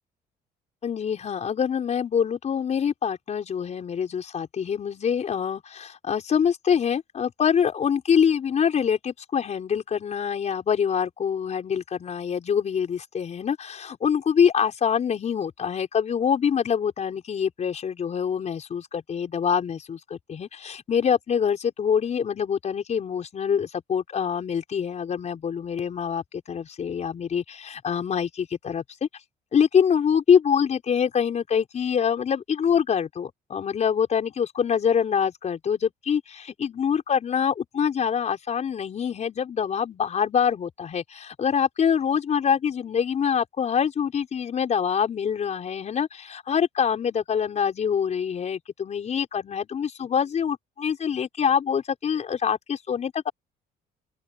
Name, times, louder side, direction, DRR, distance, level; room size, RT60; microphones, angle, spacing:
voice 1, 0.8-29.1 29.5-53.3, left 7 dB, 40° left, 5.2 m, -25 dB
open air
cardioid pair, 110°, 17 cm